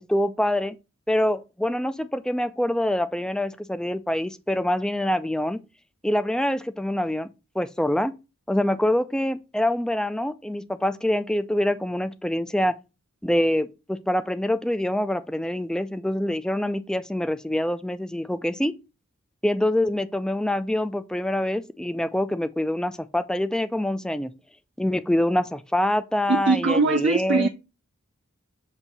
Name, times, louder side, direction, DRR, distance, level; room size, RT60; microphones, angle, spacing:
voice 1, 0.1-0.8 1.1-5.6 6.0-7.3 7.6-8.1 8.5-12.7 13.2-18.7 19.4-24.3 24.8-27.5, left 1 dB, 5° left, 0.3 m, -25 dB
voice 2, 26.3-27.5, right 4 dB, 60° right, 0.5 m, -21 dB
7.2 x 2.7 x 5.4 m
head